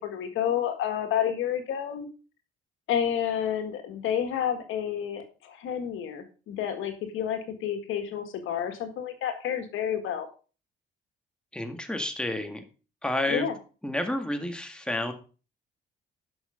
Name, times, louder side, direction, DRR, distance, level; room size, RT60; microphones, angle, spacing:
voice 1, 0.0-2.1 2.9-10.3 13.3-13.6, left 9 dB, 85° left, 7 dB, 1.8 m, -30 dB
voice 2, 11.5-12.6 13.0-13.5 13.8-15.1, left 1 dB, 5° left, 5 dB, 1.9 m, -30 dB
11.5 x 6.3 x 5.1 m, 0.36 s
cardioid pair, 90°, 20 cm